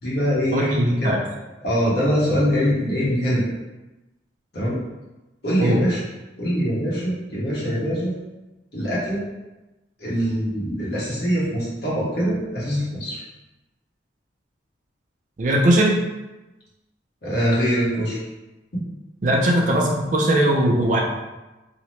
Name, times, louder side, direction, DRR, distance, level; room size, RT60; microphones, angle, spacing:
voice 1, 0.0-1.1 1.6-3.4 4.5-4.8 5.4-6.0 6.4-8.1 8.7-9.2 10.0-13.2 17.2-18.2 18.7-18.8, equal, 60° left, -7 dB, 0.9 m, -23 dB
voice 2, 0.5-1.2 5.6-5.8 15.4-15.9 19.2-21.0, right 1 dB, 45° right, -1 dB, 0.4 m, -19 dB
2.8 x 2.0 x 3.0 m, 1.1 s
head